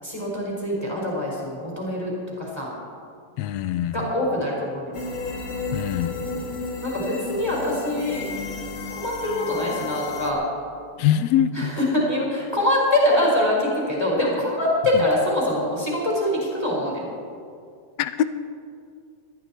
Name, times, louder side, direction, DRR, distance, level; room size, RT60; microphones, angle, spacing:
voice 1, 0.0-2.7 3.9-4.9 6.8-8.3 8.9-10.4 11.5-17.1, left 1 dB, 10° left, -4 dB, 4.5 m, -24 dB
voice 2, 3.4-4.0 5.7-6.2 11.0-11.7 18.0-18.2, left 10 dB, 75° left, 13 dB, 1.6 m, -23 dB
sound 1, 4.9-10.3, left 3 dB, 35° left, 1.5 m, -32 dB
20.5 x 13.5 x 4.4 m, 2.3 s
omnidirectional pair, 3.4 m